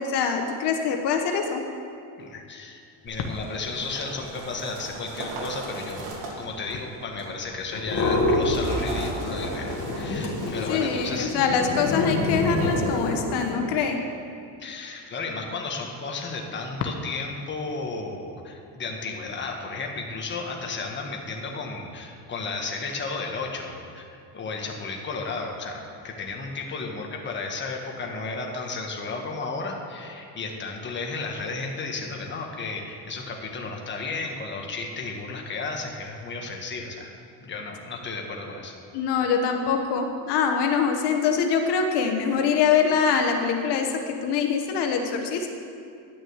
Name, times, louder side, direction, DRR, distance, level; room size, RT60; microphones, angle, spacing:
voice 1, 0.0-1.7 10.7-14.0 38.9-45.5, left 6 dB, 70° left, 4 dB, 1.2 m, -24 dB
voice 2, 2.2-6.1 6.4-11.3 14.6-37.1 37.4-38.7, left 3 dB, 25° left, 1 dB, 1.4 m, -33 dB
sound 1, 3.1-12.0, right 2 dB, 75° right, 2.6 m, -39 dB
sound 2, 7.7-9.0 9.2-13.6, left 2 dB, 45° left, 2.2 m, -27 dB
11.0 x 6.3 x 8.0 m, 2.4 s
cardioid pair, 135°, 43 cm